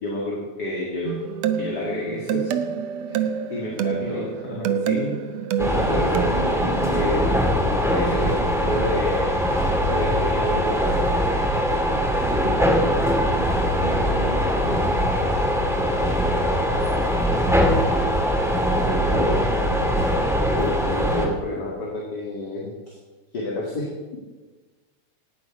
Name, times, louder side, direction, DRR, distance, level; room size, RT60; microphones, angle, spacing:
voice 1, 0.0-1.2 1.6-2.5 3.1-5.2 5.6-6.3 6.9-11.1 14.1-14.3 18.9-19.4 20.5-22.9 23.3-23.9, left 1 dB, 35° left, -4 dB, 2.1 m, -29 dB
sound 1, 1.0-6.5, right 8 dB, 75° right, 1.6 m, -27 dB
voice 2, 3.7-4.3 5.7-7.1 11.9-12.4 13.3-18.5 18.8-20.1, right 2 dB, 55° right, -5 dB, 3.4 m, -35 dB
sound 2, 5.6-21.3, equal, ahead, 1.0 m, -22 dB
14.5 x 9.4 x 4.8 m, 1.3 s
omnidirectional pair, 3.7 m